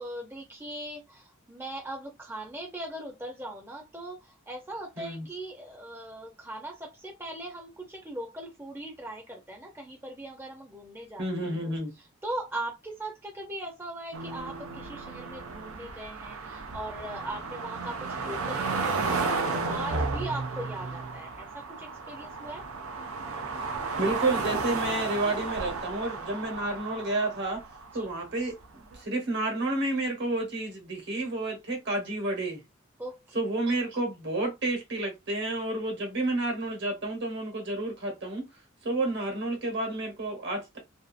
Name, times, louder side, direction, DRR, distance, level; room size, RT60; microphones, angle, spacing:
voice 1, 0.0-11.5 12.2-22.6 27.9-28.0 33.0-33.4 38.9-39.0, right 1 dB, 10° right, 0.6 m, -40 dB
voice 2, 11.2-11.9 24.0-27.6 27.9-28.6 28.9-32.6 33.3-38.5 38.8-40.8, right 2 dB, 55° right, 1.1 m, -30 dB
sound 1, 14.1-28.2 28.9-29.0, right 4 dB, 90° right, 0.6 m, -33 dB
2.6 x 2.4 x 2.4 m
head